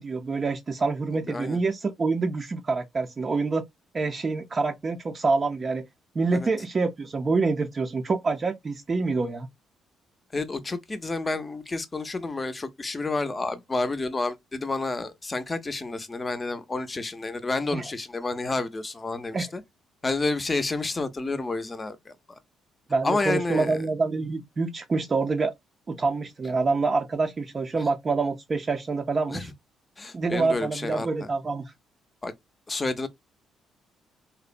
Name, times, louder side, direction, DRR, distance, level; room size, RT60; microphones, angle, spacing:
voice 1, 0.0-3.6 3.9-5.9 6.2-9.5 17.7-17.8 19.3-19.5 22.9-25.5 25.9-29.5 30.1-31.7, right 3 dB, 40° right, 0.4 m, -26 dB
voice 2, 1.3-1.6 6.3-6.5 10.3-19.6 20.0-22.4 23.0-23.8 29.3-29.5 30.0-31.3 32.2-32.3 32.7-33.1, left 3 dB, 30° left, 0.6 m, -30 dB
2.8 x 2.1 x 2.4 m
supercardioid pair, 65°, 0 cm